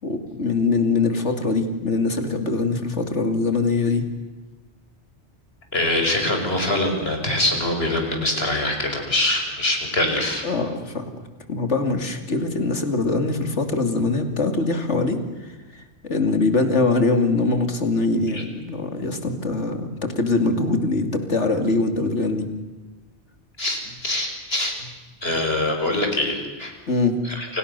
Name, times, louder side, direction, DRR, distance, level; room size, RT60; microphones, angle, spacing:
voice 1, 0.0-4.0 10.4-11.1 11.5-22.5 26.9-27.2, left 3 dB, 75° left, 7 dB, 3.0 m, -23 dB
voice 2, 5.7-10.5 18.3-18.4 23.6-24.8 25.2-26.7 27.2-27.6, left 1 dB, 60° left, 3 dB, 6.0 m, -24 dB
29.5 x 28.5 x 6.9 m, 1.2 s
omnidirectional pair, 1.2 m